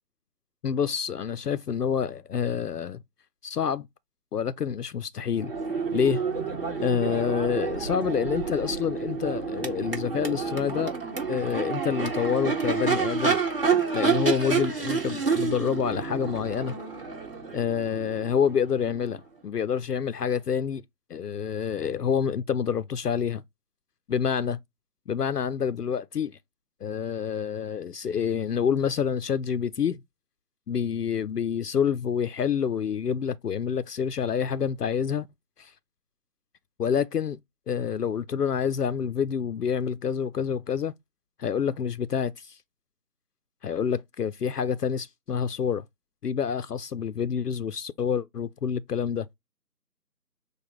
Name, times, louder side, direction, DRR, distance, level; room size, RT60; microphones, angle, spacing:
voice 1, 0.6-3.0 3.4-3.9 4.3-5.5 5.9-6.2 6.8-10.9 11.3-13.4 13.9-16.7 17.5-20.8 21.1-23.4 24.1-24.6 25.1-26.4 26.8-30.0 30.7-35.3 35.6-35.7 36.8-37.4 37.7-40.9 41.4-42.6 43.6-45.8 46.2-49.3, left 7 dB, 70° left, 0.6 m, -27 dB
Crowd / Race car auto racing / Accelerating revving vroom, 5.3-19.2, right 5 dB, 35° right, 1.5 m, -29 dB
6.6 x 2.3 x 3.0 m
figure-of-eight pair, 165°, 49 cm